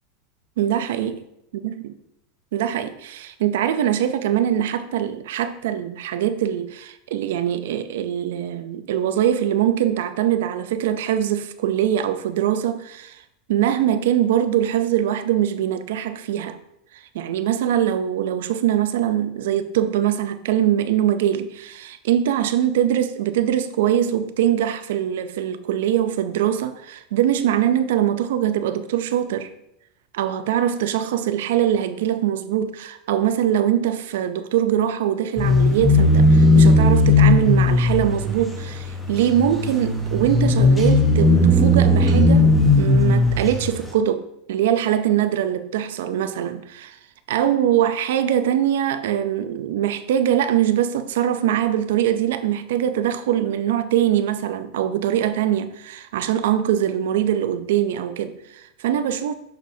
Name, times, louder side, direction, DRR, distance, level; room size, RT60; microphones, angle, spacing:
voice 1, 0.6-1.2 1.5-1.7 2.5-13.2 13.5-16.6 16.9-29.5 30.1-47.0 47.3-59.3, right 10 dB, 75° right, 0.5 m, -22 dB
sound 1, 35.4-43.7, left 1 dB, 5° left, 0.8 m, -17 dB
6.6 x 6.1 x 2.7 m
supercardioid pair, 180°, 0 cm